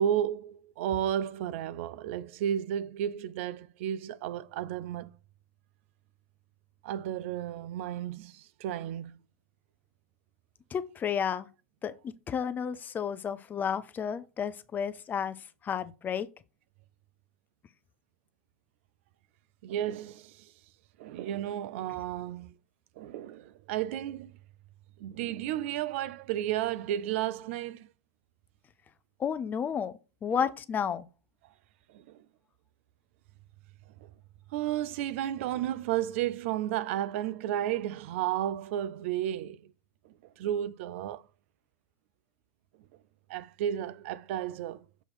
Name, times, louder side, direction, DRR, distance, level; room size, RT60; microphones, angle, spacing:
voice 1, 0.0-5.2 6.8-9.2 19.6-20.5 21.0-22.6 23.0-24.3 25.0-27.9 31.9-32.2 34.0-34.1 34.5-39.6 40.0-41.2 43.3-44.8, right 11 dB, 60° right, 0.4 m, -33 dB
voice 2, 10.7-11.5 11.8-16.3 29.2-31.1, left 7 dB, 25° left, 0.5 m, -32 dB
7.0 x 2.9 x 5.6 m
hypercardioid pair, 105°, 7 cm